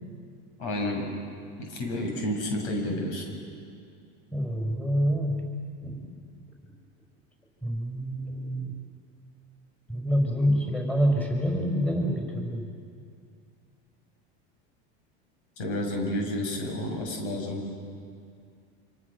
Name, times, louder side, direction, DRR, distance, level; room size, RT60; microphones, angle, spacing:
voice 1, 0.6-1.1 1.6-3.2 15.6-17.6, left 1 dB, 85° left, 1 dB, 7.3 m, -30 dB
voice 2, 4.3-5.4 5.8-6.0 7.6-8.7 9.9-12.6, equal, 5° left, 1 dB, 5.4 m, -27 dB
27.5 x 26.5 x 6.7 m, 2.3 s
supercardioid pair, 135°, 33 cm